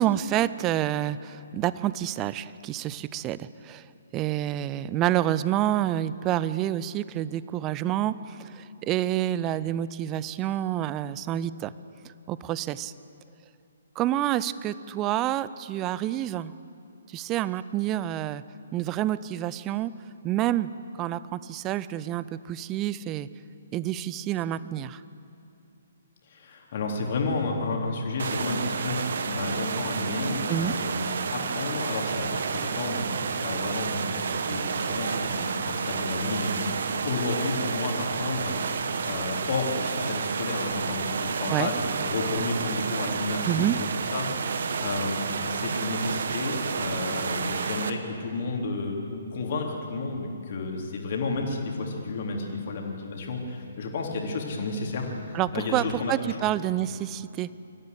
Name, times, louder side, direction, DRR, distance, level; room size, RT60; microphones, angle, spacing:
voice 1, 0.0-3.8 4.1-11.7 12.3-12.9 14.0-16.5 17.1-18.4 18.7-19.9 20.2-20.7 21.0-23.3 23.7-25.0 30.5-30.7 41.5-41.7 43.5-43.8 55.3-57.5, right 12 dB, 20° right, 17 dB, 0.5 m, -28 dB
voice 2, 26.3-31.0 31.3-33.1 33.4-38.8 39.0-43.9 44.1-56.4, left 3 dB, 45° left, 1 dB, 3.5 m, -31 dB
sound 1, 28.2-47.9, right 5 dB, 55° right, 1.3 m, -30 dB
25.0 x 14.5 x 8.2 m, 2.6 s
figure-of-eight pair, 130°, 0 cm